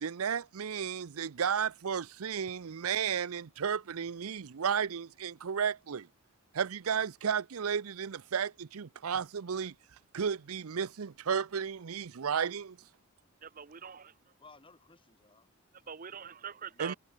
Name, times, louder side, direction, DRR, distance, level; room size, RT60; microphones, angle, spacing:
voice 1, 0.0-6.1 6.5-9.7 10.1-12.8 16.8-16.9, right 7 dB, 80° right, 0.6 m, -33 dB
voice 2, 13.4-14.1 15.9-16.9, right 7 dB, 40° right, 0.8 m, -44 dB
voice 3, 14.4-15.9 16.7-17.0, left 3 dB, 25° left, 4.4 m, -59 dB
head